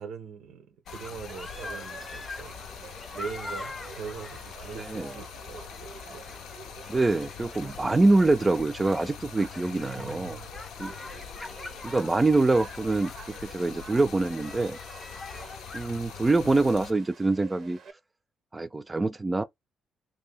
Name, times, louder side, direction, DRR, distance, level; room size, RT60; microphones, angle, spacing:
voice 1, 0.0-2.6 3.1-6.3 9.9-10.6, right 6 dB, 85° right, 0.8 m, -42 dB
Stream, 0.8-16.9, left 9 dB, 85° left, 0.4 m, -44 dB
sound 1, 0.9-16.0, left 2 dB, 20° left, 0.6 m, -44 dB
Conversation / Crowd, 1.3-17.9, right 6 dB, 60° right, 0.6 m, -49 dB
voice 2, 4.7-5.1 6.9-10.4 10.8-10.9 11.8-14.8 15.7-17.8 18.5-19.4, right 2 dB, 20° right, 0.4 m, -25 dB
2.7 x 2.7 x 3.4 m
cardioid pair, 90°, 0 cm